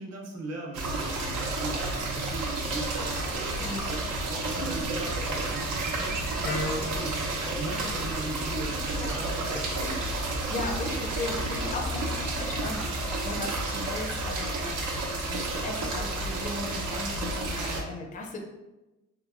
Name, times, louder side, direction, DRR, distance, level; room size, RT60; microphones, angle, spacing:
voice 1, 0.0-7.2 7.5-10.3 12.2-12.8 18.0-18.2, right 2 dB, 55° right, 0 dB, 0.8 m, -39 dB
sound 1, 0.7-17.8, right 2 dB, 90° right, 0.6 m, -31 dB
sound 2, 2.8-9.1, right 2 dB, 30° right, 0.5 m, -42 dB
voice 2, 3.6-3.9 4.6-4.8 8.7-9.2 9.8-10.1 10.5-18.4, left 2 dB, 25° left, 2 dB, 0.4 m, -37 dB
Wind instrument woodwind instrument, 6.4-10.3, left 2 dB, 80° left, 0.8 m, -39 dB
2.8 x 2.7 x 2.5 m, 1.0 s
cardioid pair, 90°, 30 cm